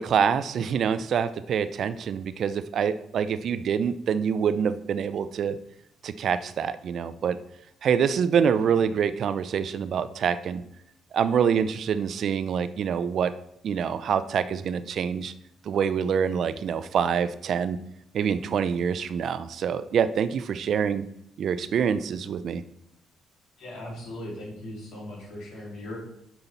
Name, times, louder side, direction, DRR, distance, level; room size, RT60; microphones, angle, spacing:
voice 1, 0.0-5.6 6.0-7.4 7.8-10.6 11.1-13.3 13.6-15.3 15.7-17.8 18.1-21.0 21.4-22.6, right 7 dB, 65° right, 13 dB, 0.4 m, -26 dB
voice 2, 23.6-26.0, left 1 dB, 80° left, -3 dB, 2.9 m, -38 dB
6.8 x 5.7 x 4.1 m, 0.76 s
cardioid pair, 90°, 0 cm